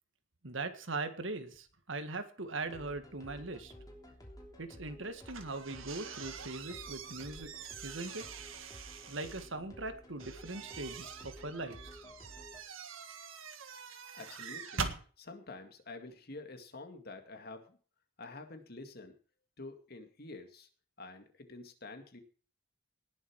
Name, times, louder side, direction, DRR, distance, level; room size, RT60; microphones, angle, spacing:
voice 1, 0.4-3.7 4.6-7.5 7.8-8.3 9.1-12.0, right 2 dB, 70° right, 9 dB, 1.7 m, -40 dB
sound 1, 2.6-12.6, equal, 20° left, 3.2 m, -53 dB
office door open close, 5.2-9.5 10.2-15.0, right 5 dB, 90° right, 1.7 m, -44 dB
voice 2, 14.1-14.9 15.2-17.8 18.2-19.1 19.6-20.7 21.0-22.2, left 3 dB, 50° left, 6 dB, 2.2 m, -48 dB
19.0 x 7.2 x 4.7 m, 0.40 s
head